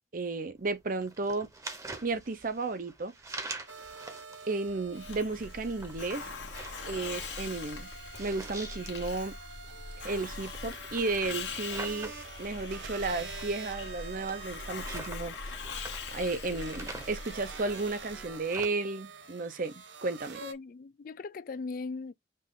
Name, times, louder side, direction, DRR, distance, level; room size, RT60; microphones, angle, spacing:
voice 1, 0.1-1.5 2.0-3.1 4.5-6.3 6.9-7.9 8.2-9.4 10.0-12.1 12.4-15.3 16.1-19.7 20.0-20.4, right 3 dB, 50° right, 0.7 m, -33 dB
sound 1, 0.5-18.7, right 2 dB, 15° right, 0.9 m, -46 dB
sound 2, 3.7-20.5, right 5 dB, 80° right, 0.8 m, -47 dB
Hiss, 4.9-18.4, left 4 dB, 80° left, 1.2 m, -42 dB
voice 2, 20.4-22.1, left 4 dB, 50° left, 0.4 m, -39 dB
5.4 x 2.6 x 3.7 m
head